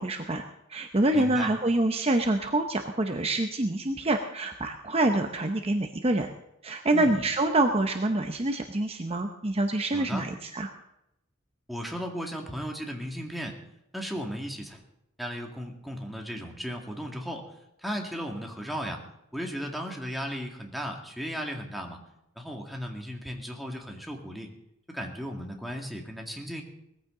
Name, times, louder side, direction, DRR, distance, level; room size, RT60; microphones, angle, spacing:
voice 1, 0.0-6.3 6.6-10.7, right 2 dB, 30° right, 5 dB, 0.9 m, -26 dB
voice 2, 1.1-1.5 6.9-7.2 9.9-10.3 11.7-13.6 13.9-14.8 15.2-17.5 17.8-19.0 19.3-22.0 22.4-24.5 24.9-26.6, equal, ahead, 1 dB, 2.1 m, -35 dB
19.5 x 14.5 x 3.9 m, 0.83 s
head